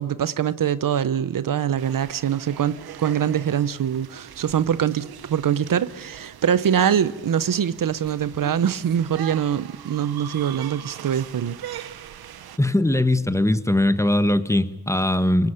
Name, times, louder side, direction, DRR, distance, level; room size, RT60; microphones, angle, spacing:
voice 1, 0.0-11.9, right 9 dB, 60° right, 0.9 m, -23 dB
sound 1, 1.8-12.6, right 10 dB, 80° right, 1.2 m, -41 dB
voice 2, 12.6-15.5, left 1 dB, 10° left, 1.4 m, -20 dB
23.0 x 20.0 x 8.7 m
cardioid pair, 55°, 37 cm